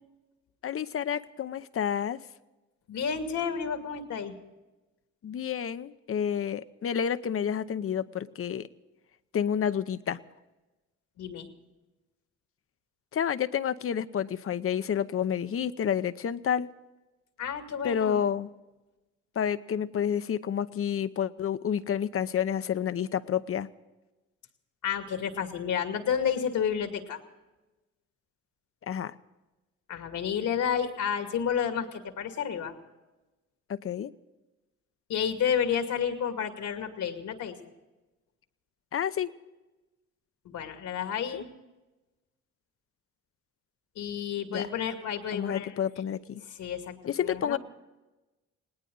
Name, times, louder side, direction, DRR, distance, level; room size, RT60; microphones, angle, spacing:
voice 1, 0.6-2.2 5.2-8.7 9.3-10.2 13.1-16.7 17.8-18.5 19.4-23.7 28.8-29.1 33.7-34.1 38.9-39.3 41.3-41.4 44.5-44.6 45.3-46.4 47.0-47.6, left 8 dB, 50° left, 13 dB, 0.8 m, -29 dB
voice 2, 2.9-4.3 11.2-11.5 17.4-18.2 24.8-27.2 29.9-32.7 35.1-37.6 40.4-41.5 44.0-45.7 46.6-47.0 47.2-47.6, left 7 dB, 75° left, 6 dB, 2.3 m, -30 dB
19.5 x 18.5 x 3.9 m, 1.1 s
cardioid pair, 90°, 30 cm